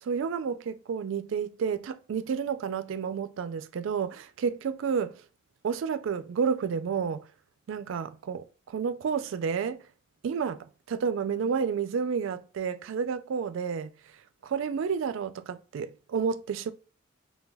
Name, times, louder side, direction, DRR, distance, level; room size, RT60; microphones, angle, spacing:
voice 1, 0.1-5.2 5.6-7.3 7.7-9.8 10.2-13.9 14.4-16.7, right 6 dB, 70° right, 0.3 m, -30 dB
3.3 x 2.2 x 2.2 m
head